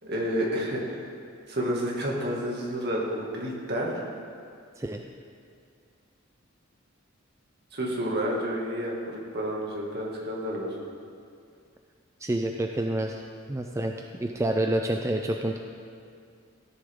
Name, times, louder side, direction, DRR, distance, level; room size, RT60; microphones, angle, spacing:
voice 1, 0.0-1.0 1.5-4.0 7.7-10.8, equal, 55° right, -3 dB, 2.1 m, -30 dB
voice 2, 12.2-13.2 13.5-15.6, right 1 dB, 15° right, 3 dB, 0.4 m, -28 dB
16.0 x 10.0 x 3.7 m, 2.3 s
head